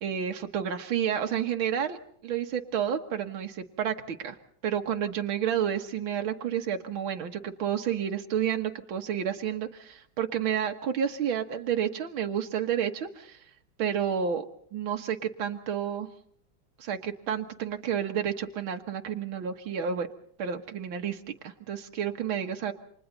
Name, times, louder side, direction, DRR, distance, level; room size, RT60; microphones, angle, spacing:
voice 1, 0.0-4.4 4.6-13.4 13.8-14.4 14.7-16.1 16.8-20.1 20.4-22.7, right 8 dB, 90° right, 4 dB, 2.2 m, -30 dB
29.5 x 26.5 x 4.0 m, 0.63 s
omnidirectional pair, 2.1 m